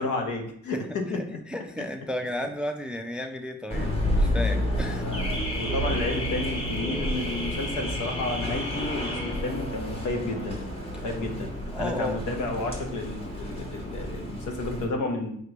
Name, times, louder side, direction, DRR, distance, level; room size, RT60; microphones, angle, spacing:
voice 1, 0.0-1.4 4.4-4.5 5.0-10.7 11.0-15.4, left 2 dB, 75° left, 3 dB, 1.0 m, -31 dB
voice 2, 1.1-5.1 11.0-11.1 11.7-12.2, left 1 dB, 5° right, 6 dB, 0.3 m, -33 dB
Car / Alarm, 3.7-14.9, equal, 20° left, 1.2 m, -30 dB
sound 1, 4.0-13.1, left 1 dB, 45° left, 1.1 m, -44 dB
5.1 x 3.2 x 3.0 m, 0.66 s
cardioid pair, 90°, 30 cm